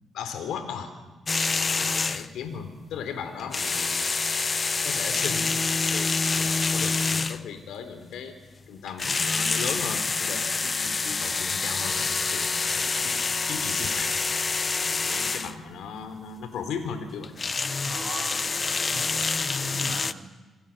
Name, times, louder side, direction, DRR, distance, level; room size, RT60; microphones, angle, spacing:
voice 1, 0.1-0.9 1.7-4.2 4.8-5.5 5.9-8.3 8.7-14.1 14.7-17.4, left 6 dB, 85° left, 8 dB, 3.8 m, -37 dB
sound 1, 1.3-2.4 3.4-7.6 8.9-15.5 17.2-20.1, left 4 dB, 35° left, 1.1 m, -27 dB
voice 2, 17.8-19.3 19.6-20.4, right 5 dB, 50° right, 2 dB, 4.3 m, -40 dB
28.0 x 26.0 x 7.5 m, 1.2 s
cardioid pair, 75°, 0 cm